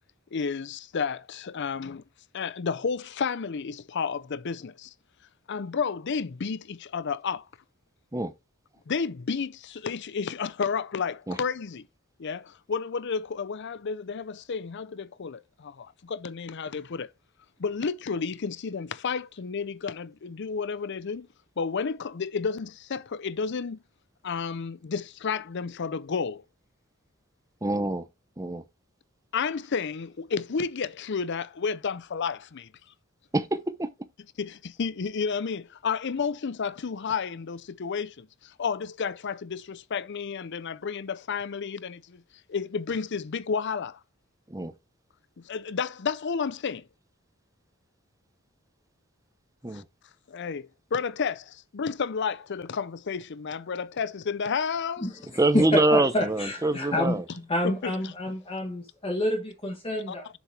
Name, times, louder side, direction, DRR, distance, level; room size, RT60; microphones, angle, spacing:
voice 1, 0.3-2.0 2.3-4.9 5.5-7.5 8.9-11.8 12.2-17.1 17.6-21.3 21.6-23.8 24.2-26.4 29.3-32.7 34.4-42.2 42.5-44.0 45.4-46.8 49.7-49.8 50.3-55.1 57.6-58.1 60.1-60.2, left 5 dB, 60° left, 0.6 m, -31 dB
voice 2, 27.6-28.1 28.4-28.6 33.3-34.1 44.5-44.7 49.6-49.8 55.4-57.2, right 2 dB, 15° right, 0.9 m, -25 dB
voice 3, 55.0-60.3, left 1 dB, 25° left, 1.4 m, -29 dB
7.1 x 7.1 x 3.3 m
head